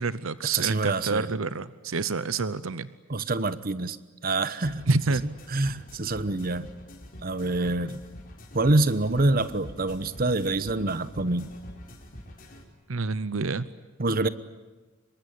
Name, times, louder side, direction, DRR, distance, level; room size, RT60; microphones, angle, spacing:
voice 1, 0.0-2.9 4.9-5.2 12.9-13.7, right 3 dB, 70° right, 0.9 m, -28 dB
voice 2, 0.5-1.3 3.1-4.0 4.2-4.9 5.5-6.7 7.2-8.0 8.5-11.5 14.0-14.3, right 2 dB, 45° right, 1.1 m, -26 dB
sound 1, 4.6-12.6, equal, 40° left, 4.9 m, -46 dB
26.0 x 23.0 x 9.6 m
head